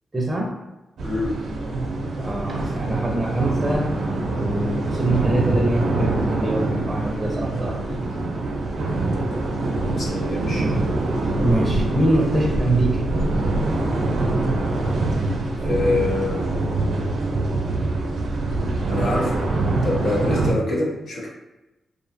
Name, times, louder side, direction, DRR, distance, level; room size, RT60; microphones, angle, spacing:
voice 1, 0.1-0.5 2.2-4.0 4.3-8.0 11.4-13.1, right 1 dB, 20° right, -2 dB, 0.5 m, -24 dB
voice 2, 1.0-1.3 10.0-10.6 15.6-16.4 18.9-19.4 19.8-21.3, left 2 dB, 70° left, -5 dB, 0.7 m, -25 dB
sound 1, 1.0-20.5, right 2 dB, 80° right, 0.4 m, -24 dB
2.6 x 2.1 x 2.5 m, 0.98 s
cardioid pair, 95°, 0 cm